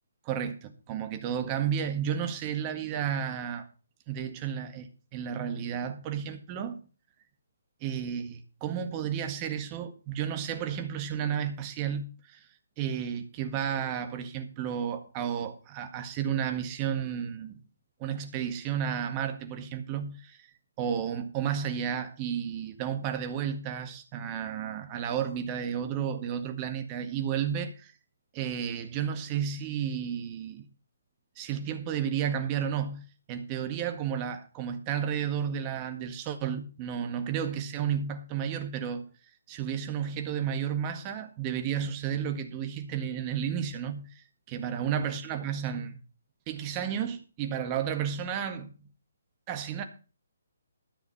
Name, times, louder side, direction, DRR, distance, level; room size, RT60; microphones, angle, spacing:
voice 1, 0.2-3.7 4.1-6.8 7.8-12.4 12.8-17.6 18.0-20.4 20.8-27.9 28.3-30.7 31.4-39.1 39.5-46.0 46.5-48.7 49.5-49.8, right 8 dB, 25° right, 1.7 m, -32 dB
13.5 x 7.0 x 5.5 m
figure-of-eight pair, 140°, 0 cm